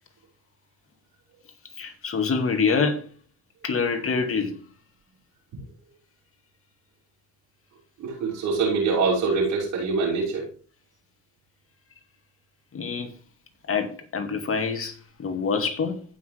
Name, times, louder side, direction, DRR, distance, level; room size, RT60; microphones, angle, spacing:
voice 1, 1.8-3.1 3.6-4.6 12.7-13.1 13.7-16.0, left 5 dB, 45° left, 2.2 m, -26 dB
voice 2, 8.0-10.5, right 4 dB, 85° right, 6.2 m, -24 dB
15.5 x 6.1 x 3.4 m
cardioid pair, 90°, 30 cm